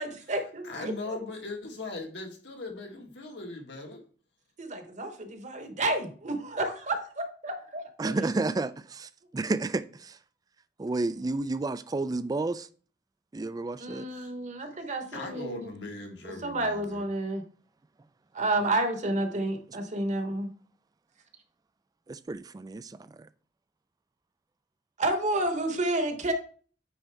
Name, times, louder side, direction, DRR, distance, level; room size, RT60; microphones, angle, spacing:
voice 1, 0.0-1.2 4.6-7.8 13.8-15.7 16.4-17.4 18.3-20.5 25.0-26.3, right 2 dB, 45° right, 1.1 m, -30 dB
voice 2, 0.6-4.0 14.1-14.3 14.6-14.7 15.1-17.0, left 3 dB, 75° left, 1.6 m, -39 dB
voice 3, 8.0-10.2 10.8-12.7 13.3-14.1 22.1-23.3, right 3 dB, 20° right, 0.3 m, -31 dB
9.0 x 4.2 x 3.5 m
head